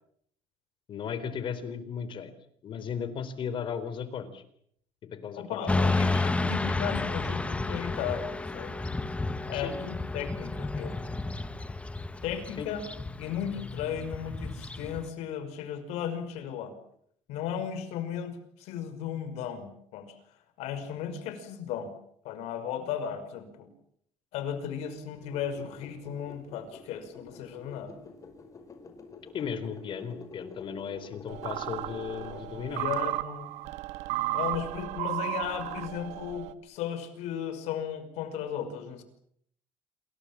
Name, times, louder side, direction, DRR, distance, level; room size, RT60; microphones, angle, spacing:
voice 1, 0.9-2.3 2.6-4.4 5.1-6.3 9.5-9.8 12.6-12.7 29.3-32.9, left 7 dB, 50° left, 12 dB, 4.0 m, -36 dB
voice 2, 5.3-8.7 9.5-11.0 12.2-12.8 13.2-16.8 17.3-20.1 20.6-21.9 22.2-23.7 24.3-28.0 32.7-33.5 34.3-39.0, left 8 dB, 80° left, 10 dB, 5.6 m, -35 dB
Motorcycle / Traffic noise roadway noise, 5.7-15.1, left 2 dB, 10° left, 1.6 m, -31 dB
sound 1, 25.2-32.9, left 4 dB, 30° left, 5.4 m, -48 dB
sound 2, 31.3-36.5, right 16 dB, 80° right, 1.7 m, -34 dB
28.0 x 23.5 x 7.5 m, 0.70 s
cardioid pair, 125°, 11 cm